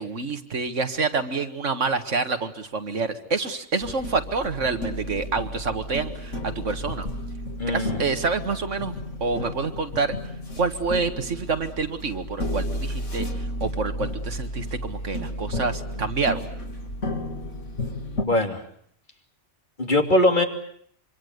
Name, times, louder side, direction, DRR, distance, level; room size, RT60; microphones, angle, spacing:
voice 1, 0.0-7.1 7.7-8.9 9.2-10.1 10.6-16.4, right 4 dB, 80° right, 8 dB, 2.1 m, -27 dB
sound 1, 3.8-18.2, left 1 dB, 80° left, 3.3 m, -33 dB
voice 2, 7.6-8.0 18.2-18.6 19.8-20.4, left 1 dB, 40° left, 4 dB, 3.1 m, -21 dB
25.5 x 25.5 x 8.1 m, 0.65 s
omnidirectional pair, 1.3 m